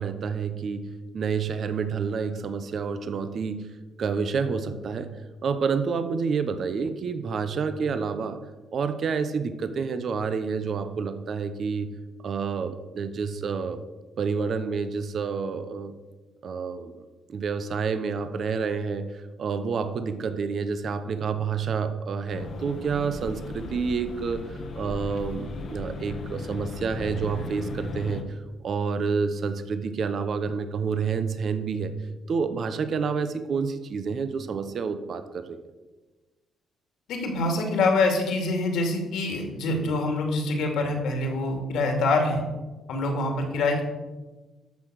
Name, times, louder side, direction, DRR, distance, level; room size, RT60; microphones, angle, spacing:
voice 1, 0.0-3.7 4.0-5.1 5.4-8.4 8.7-11.9 12.2-13.8 14.2-15.9 16.4-17.0 17.3-24.4 24.8-28.4 28.6-35.6, right 5 dB, 45° right, 10 dB, 1.0 m, -29 dB
sound 1, 22.3-28.2, left 3 dB, 50° left, 1.2 m, -37 dB
voice 2, 37.1-42.4 42.9-43.8, left 2 dB, 80° left, 3 dB, 2.6 m, -25 dB
13.5 x 6.0 x 6.4 m, 1.2 s
cardioid pair, 140°, 0 cm